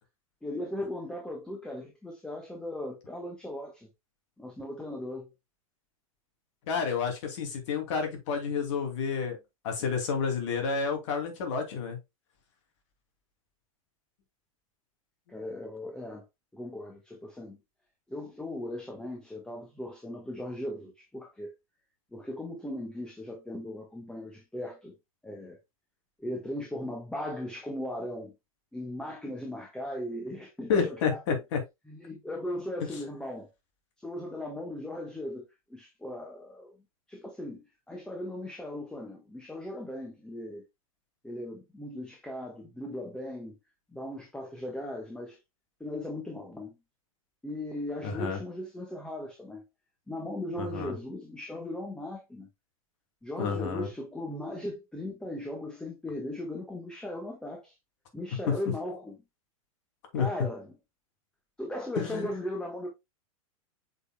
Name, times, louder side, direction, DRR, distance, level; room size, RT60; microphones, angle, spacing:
voice 1, 0.4-3.9 4.4-5.3 15.3-16.2 16.5-17.6 18.1-21.5 22.1-24.9 25.2-25.6 26.2-28.3 28.7-31.4 31.9-33.5 34.0-36.7 37.1-37.6 37.9-40.6 41.2-43.5 43.9-45.4 45.8-46.7 47.4-49.6 50.1-52.5 53.2-57.7 58.1-59.2 60.1-60.7 61.6-62.9, left 1 dB, 5° left, 1.5 m, -38 dB
voice 2, 6.7-9.4 9.6-12.0 30.7-31.6 48.0-48.4 50.6-50.9 53.4-53.9 58.5-58.6 60.1-60.3 62.0-62.3, left 6 dB, 55° left, 2.8 m, -30 dB
8.1 x 5.4 x 2.3 m
figure-of-eight pair, 100°, 18 cm